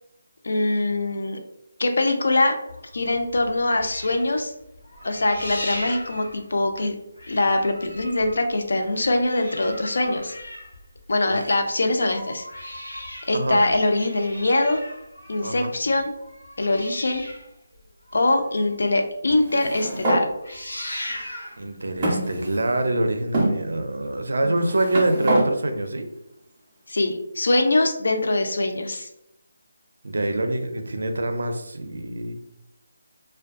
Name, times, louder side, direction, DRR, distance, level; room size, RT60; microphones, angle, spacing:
voice 1, 0.4-1.4 1.8-2.6 2.9-4.5 5.0-7.0 7.3-10.4 11.1-12.5 13.3-14.8 15.3-16.1 16.6-17.2 18.1-20.3 26.9-29.1, left 2 dB, 65° left, 5 dB, 0.4 m, -23 dB
sound 1, 2.7-6.9 7.2-11.4 11.9-18.9 19.3-19.4 19.7-20.0 20.3-21.6 22.4-22.5, left 1 dB, 85° left, 1.0 m, -38 dB
voice 2, 13.3-13.6 15.4-15.7 21.6-26.1 30.0-32.3, right 1 dB, 75° right, 6 dB, 0.4 m, -25 dB
sound 2, 19.4-20.3 21.1-21.2 22.0-22.8 23.3-23.5 24.4-25.5, right 1 dB, 15° right, 0.4 m, -25 dB
2.6 x 2.2 x 2.4 m, 0.81 s
hypercardioid pair, 180°, 0 cm